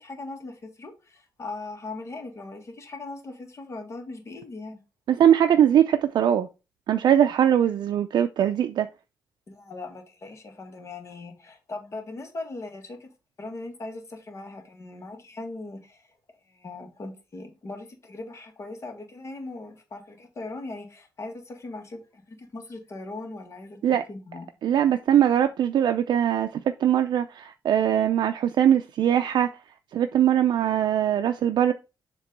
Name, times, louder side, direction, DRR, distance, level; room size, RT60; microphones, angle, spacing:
voice 1, 0.0-4.8 9.5-13.1 13.4-16.0 16.5-23.8 24.1-24.5, left 2 dB, 40° left, 1.7 m, -39 dB
voice 2, 5.1-6.5 6.9-8.9 23.8-24.0 24.6-29.5 29.9-31.7, right 10 dB, 70° right, 0.4 m, -21 dB
7.3 x 3.0 x 5.3 m
wide cardioid pair, 140°, 8 cm